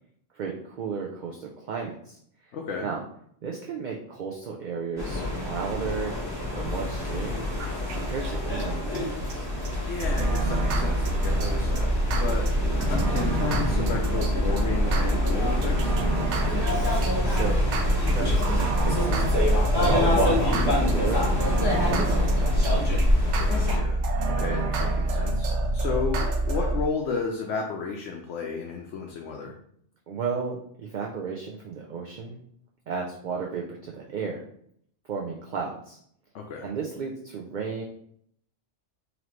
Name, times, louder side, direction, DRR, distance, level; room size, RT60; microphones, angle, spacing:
voice 1, 0.3-2.5 2.8-3.0 3.4-6.1 6.5-7.4 7.9-9.5 16.5-20.2 20.6-21.2 21.9-22.9 30.1-32.4 32.9-34.4 35.1-36.0 36.6-37.8, right 5 dB, 55° right, 0 dB, 0.5 m, -34 dB
voice 2, 2.5-2.9 9.8-12.5 12.8-15.9 23.4-29.5 36.3-36.7, left 5 dB, 85° left, 1 dB, 0.9 m, -33 dB
sound 1, 5.0-23.8, left 1 dB, 20° left, 1.2 m, -27 dB
sound 2, 7.6-8.0 8.2-8.3 8.6-8.7 8.9-9.0 9.3-9.4 9.6-9.7 10.0-26.8, right 2 dB, 85° right, 0.9 m, -26 dB
3.9 x 3.0 x 3.1 m, 0.67 s
omnidirectional pair, 1.2 m